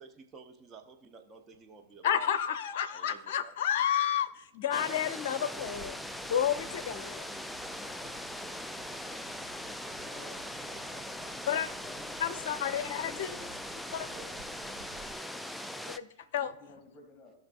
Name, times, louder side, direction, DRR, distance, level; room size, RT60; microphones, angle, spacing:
voice 1, 0.0-2.3 2.9-3.5 14.1-14.3 16.2-16.3, right 4 dB, 25° right, 4 dB, 0.9 m, -52 dB
voice 2, 2.0-6.0 6.3-7.2 11.5-11.7 12.2-13.4 13.9-14.1 15.9-16.1 16.3-16.6, left 9 dB, 50° left, 12 dB, 0.6 m, -31 dB
sound 1, 4.7-16.0, left 1 dB, 5° left, 0.4 m, -40 dB
sound 2, 5.5-15.1, right 3 dB, 60° right, 1.5 m, -56 dB
voice 3, 10.1-13.5 14.0-14.2 16.6-17.3, left 3 dB, 20° left, 1 dB, 2.4 m, -54 dB
17.5 x 5.9 x 2.5 m, 0.84 s
figure-of-eight pair, 90°, 0 cm